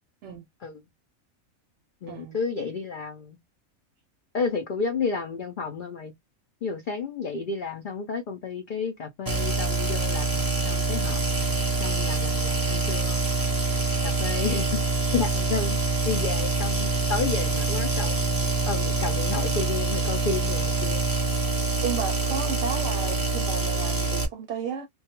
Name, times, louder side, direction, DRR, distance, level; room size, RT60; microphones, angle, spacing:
voice 1, 2.0-3.4 4.3-6.1 6.6-11.2 11.8-13.3 14.0-14.9 15.1-15.8 16.0-21.0, left 5 dB, 85° left, 0.4 m, -31 dB
sound 1, 9.3-24.3, right 2 dB, 20° right, 0.5 m, -25 dB
voice 2, 21.8-24.9, right 7 dB, 65° right, 0.8 m, -33 dB
2.3 x 2.2 x 2.8 m
omnidirectional pair, 1.4 m